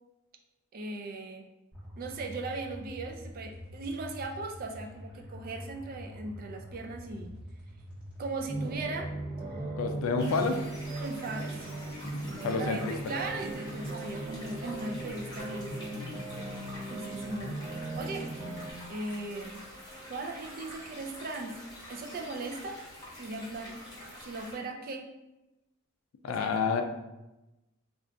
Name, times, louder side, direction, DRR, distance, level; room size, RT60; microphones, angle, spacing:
voice 1, 0.7-1.5 2.0-7.3 8.2-9.1 9.5-9.7 11.0-16.0 16.9-17.5 17.9-18.3 18.9-19.6 20.1-21.6 21.9-22.8 23.2-23.8 24.2-25.1 26.3-26.7, right 2 dB, 45° right, 3 dB, 0.3 m, -38 dB
sound 1, 1.7-9.7, equal, 5° right, 1.0 m, -46 dB
sound 2, 8.5-18.7, right 2 dB, 25° right, 1.3 m, -38 dB
voice 2, 9.8-10.6 12.0-12.9 26.2-26.8, left 4 dB, 70° left, 6 dB, 0.3 m, -29 dB
sound 3, 10.2-24.6, equal, 20° left, 0.8 m, -47 dB
2.3 x 2.2 x 3.7 m, 0.99 s
head